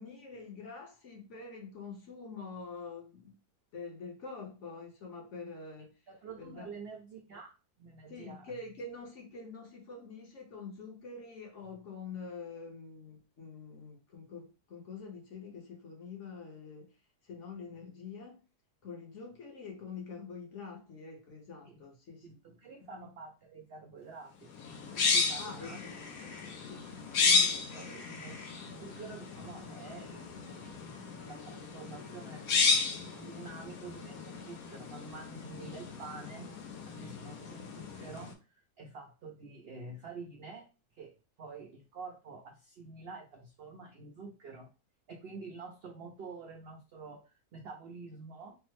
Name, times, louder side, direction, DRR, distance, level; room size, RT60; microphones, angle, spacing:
voice 1, 0.0-3.3 3.7-5.9 6.4-6.7 8.1-16.9 17.2-18.4 18.8-22.4 22.8-23.1 25.4-26.0 26.7-27.6, left 4 dB, 55° left, 1.0 m, -46 dB
voice 2, 6.1-8.5 21.7-21.8 22.2-24.5 25.0-25.8 26.2-26.3 27.2-28.4 28.7-30.9 31.2-32.5 33.2-36.5 36.9-40.7 41.0-44.7 45.1-48.6, right 4 dB, 75° right, 0.5 m, -48 dB
sound 1, 24.5-38.3, left 4 dB, 70° left, 1.1 m, -33 dB
3.3 x 2.0 x 3.0 m
omnidirectional pair, 1.7 m